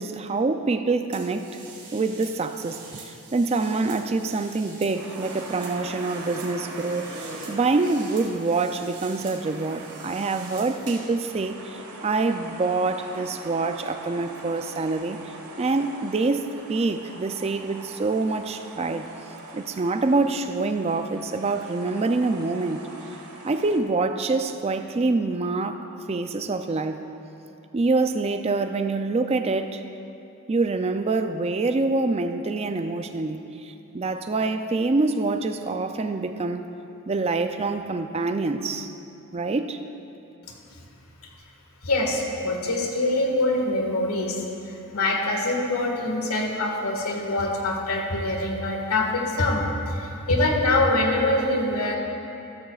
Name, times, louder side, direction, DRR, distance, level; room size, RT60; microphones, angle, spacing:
voice 1, 0.0-1.6 1.9-7.1 7.5-15.2 15.6-19.1 19.5-22.9 23.4-27.0 27.7-29.8 30.5-36.6 37.1-38.9 39.3-39.8, right 3 dB, 30° right, 8 dB, 0.4 m, -26 dB
sound 1, 1.1-11.1, right 3 dB, 50° right, 2.5 m, -44 dB
sound 2, 4.9-23.8, right 2 dB, 85° right, 1.5 m, -42 dB
voice 2, 41.8-52.0, left 2 dB, 90° left, 0 dB, 1.7 m, -24 dB
14.0 x 14.0 x 2.4 m, 2.8 s
head